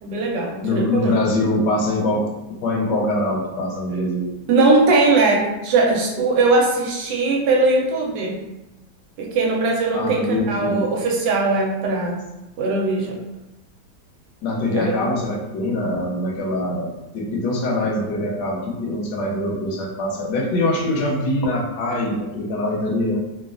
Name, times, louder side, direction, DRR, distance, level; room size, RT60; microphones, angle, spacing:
voice 1, 0.0-1.2 4.5-8.4 9.2-12.2 12.6-13.2 14.7-14.8, right 3 dB, 75° right, -1 dB, 1.2 m, -20 dB
voice 2, 0.6-2.3 2.6-4.3 9.9-10.9 14.4-23.2, left 1 dB, 75° left, -1 dB, 1.2 m, -23 dB
3.2 x 2.2 x 2.4 m, 0.97 s
omnidirectional pair, 1.9 m